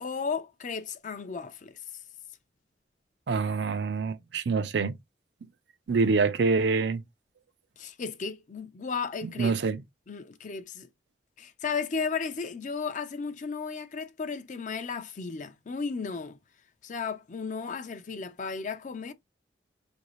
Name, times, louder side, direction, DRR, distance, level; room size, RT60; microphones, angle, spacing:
voice 1, 0.0-1.8 7.8-9.6 10.1-10.9 11.4-16.4 16.8-19.1, left 5 dB, 40° left, 0.5 m, -34 dB
voice 2, 3.3-4.9 5.9-7.0 9.2-9.8, right 4 dB, 65° right, 0.4 m, -26 dB
4.6 x 2.7 x 3.0 m
head